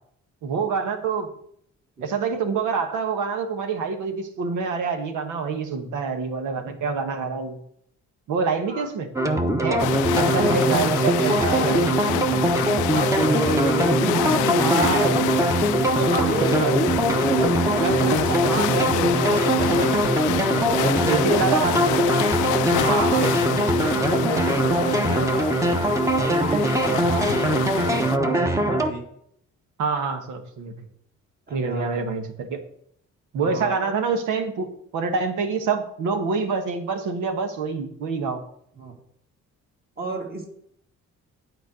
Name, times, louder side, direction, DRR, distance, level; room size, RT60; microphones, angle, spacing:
voice 1, 0.4-1.3 2.0-7.6 8.3-9.1 9.6-9.9 10.1-12.0 14.6-15.3 16.1-17.0 17.8-20.1 21.1-22.3 22.8-23.7 29.8-30.7 31.5-32.6 33.3-38.4, right 5 dB, 85° right, 6 dB, 1.4 m, -26 dB
sound 1, 9.2-28.9, right 1 dB, 10° right, 1.0 m, -22 dB
voice 2, 9.6-9.9 12.9-15.2 15.7-16.9 17.2-18.2 20.6-21.7 22.6-23.3 23.8-25.7 26.2-29.0 31.5-32.0 33.4-33.7 38.8-39.0 40.0-40.5, right 2 dB, 30° right, 0 dB, 2.4 m, -31 dB
sound 2, 9.8-28.2, left 15 dB, 85° left, 0.5 m, -27 dB
9.3 x 4.6 x 6.7 m, 0.69 s
cardioid pair, 90°, 30 cm